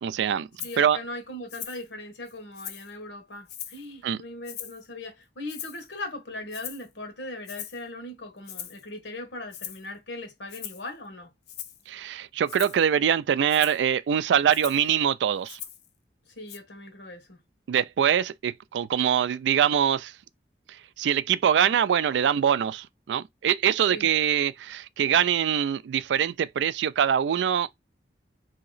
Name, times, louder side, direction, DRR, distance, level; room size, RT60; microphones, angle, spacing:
voice 1, 0.0-0.5 0.8-1.0 4.0-4.2 11.9-15.6 17.7-20.1 21.0-27.7, right 8 dB, 80° right, 0.3 m, -23 dB
voice 2, 0.6-11.3 16.4-17.4 23.9-24.1, left 2 dB, 90° left, 1.2 m, -39 dB
Rattle (instrument), 0.6-0.8 1.5-1.8 2.3-2.9 3.5-3.9 4.4-4.9 5.5-5.9 6.5-6.9 7.5-7.8 8.5-8.8 9.5-9.8 10.5-10.9 11.5-11.8 12.5-12.8 13.5-13.8 14.5-14.9 15.5-15.9 16.5-16.6, left 10 dB, 65° left, 0.5 m, -40 dB
2.9 x 2.8 x 3.9 m
head